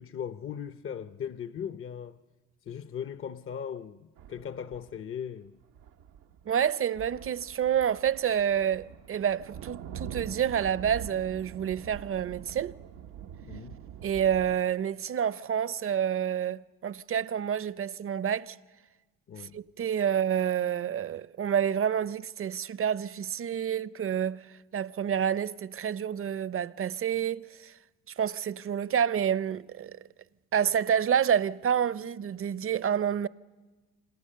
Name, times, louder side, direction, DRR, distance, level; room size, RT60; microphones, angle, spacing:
voice 1, 0.0-2.2 2.7-5.6 13.4-13.8 19.3-19.6, left 8 dB, 40° left, 0.7 m, -38 dB
sound 1, 4.2-4.9 5.6-6.7 7.0-14.6, right 8 dB, 90° right, 1.0 m, -44 dB
voice 2, 6.5-12.7 14.0-18.6 19.4-24.4 24.7-27.7 28.2-30.0 30.5-33.3, right 8 dB, 40° right, 0.7 m, -28 dB
27.5 x 26.0 x 6.7 m
cardioid pair, 85°, 34 cm